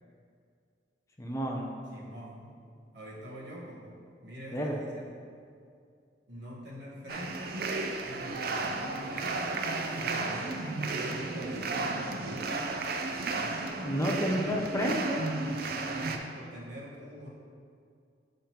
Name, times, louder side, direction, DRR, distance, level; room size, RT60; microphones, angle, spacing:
voice 1, 1.2-1.7 4.5-4.7 13.8-15.2, equal, 15° left, 0 dB, 0.5 m, -30 dB
voice 2, 1.9-2.5 2.9-3.9 4.2-5.1 6.3-7.7 8.0-9.6 10.0-12.7 15.4-15.8 16.3-17.3, equal, 70° right, -6 dB, 1.2 m, -45 dB
sound 1, 7.1-16.2, right 3 dB, 55° right, 0.4 m, -33 dB
7.4 x 5.1 x 2.9 m, 2.3 s
head